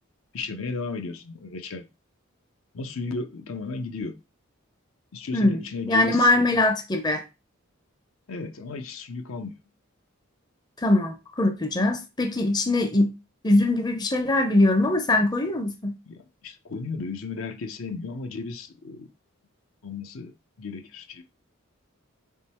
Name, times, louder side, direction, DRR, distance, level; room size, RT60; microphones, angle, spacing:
voice 1, 0.3-1.9 2.7-4.1 5.1-6.3 8.3-9.5 16.1-19.1 19.8-21.2, left 4 dB, 75° left, 0.6 m, -34 dB
voice 2, 5.3-7.2 10.8-13.1 13.4-15.9, left 2 dB, 20° left, 0.5 m, -22 dB
3.7 x 3.0 x 4.2 m
head